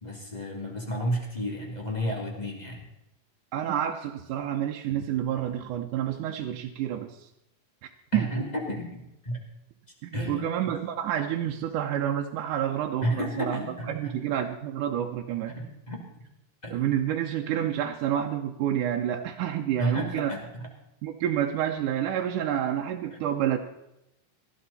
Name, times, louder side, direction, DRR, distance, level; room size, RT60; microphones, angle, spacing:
voice 1, 0.0-2.8 8.1-9.4 10.1-10.5 13.0-14.2 15.5-16.0 16.6-16.7 19.8-20.7 23.1-23.4, equal, 15° left, 0 dB, 2.6 m, -32 dB
voice 2, 3.5-7.3 8.1-8.3 10.0-13.6 13.9-15.5 16.7-20.3 21.0-23.6, right 10 dB, 80° right, 2 dB, 2.4 m, -29 dB
18.5 x 13.0 x 4.2 m, 0.86 s
omnidirectional pair, 3.7 m